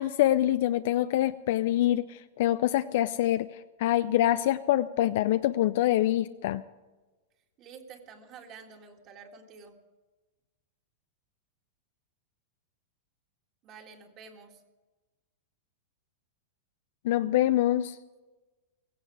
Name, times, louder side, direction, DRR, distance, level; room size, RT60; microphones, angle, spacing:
voice 1, 0.0-6.6 17.0-18.0, left 13 dB, 60° left, 12 dB, 0.5 m, -25 dB
voice 2, 7.6-9.8 13.6-14.6, right 5 dB, 30° right, 3 dB, 1.9 m, -49 dB
16.5 x 16.0 x 5.0 m, 1.2 s
supercardioid pair, 155°, 0 cm